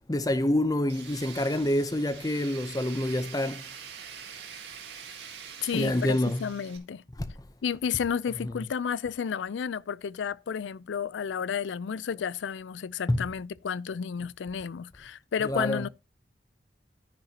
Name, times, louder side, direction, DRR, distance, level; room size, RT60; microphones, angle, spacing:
voice 1, 0.1-3.6 5.7-6.4 7.2-7.3 13.1-13.2 15.4-15.9, left 1 dB, 20° left, 0.6 m, -27 dB
Tools, 0.9-6.8, right 7 dB, 70° right, 2.0 m, -45 dB
voice 2, 5.6-7.0 7.6-15.9, left 7 dB, 90° left, 0.4 m, -32 dB
10.5 x 9.9 x 2.8 m
head